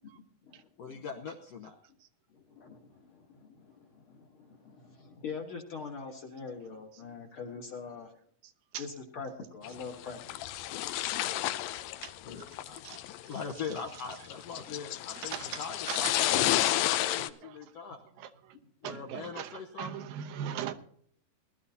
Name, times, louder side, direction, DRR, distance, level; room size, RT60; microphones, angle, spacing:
voice 1, 0.1-1.1 2.3-8.1 8.8-10.2 10.6-10.8, left 5 dB, 50° left, 3 dB, 1.7 m, -44 dB
voice 2, 0.8-1.8 11.1-11.4 12.2-13.0 13.3-18.0 18.8-20.0, left 5 dB, 65° left, 3 dB, 1.7 m, -42 dB
sound 1, 9.6-17.3, left 14 dB, 90° left, 2.5 m, -31 dB
voice 3, 15.3-15.6 15.9-16.3 16.6-16.7 17.0-17.6 18.2-18.6 18.8-20.7, right 10 dB, 85° right, 8 dB, 2.8 m, -39 dB
20.0 x 12.5 x 2.8 m, 0.62 s
omnidirectional pair, 4.0 m